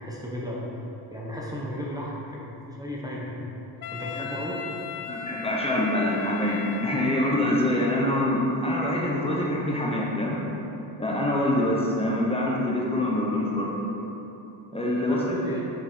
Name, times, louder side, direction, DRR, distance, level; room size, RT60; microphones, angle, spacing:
voice 1, 0.0-3.4 3.9-4.6 15.1-15.6, equal, 10° right, -5 dB, 1.0 m, -34 dB
Wind instrument woodwind instrument, 3.8-7.6, left 7 dB, 50° left, 0.6 m, -38 dB
voice 2, 5.1-10.4 11.0-13.7 14.7-15.2, left 1 dB, 15° left, -4 dB, 1.0 m, -25 dB
7.1 x 5.5 x 4.5 m, 3.0 s
cardioid pair, 115°, 45 cm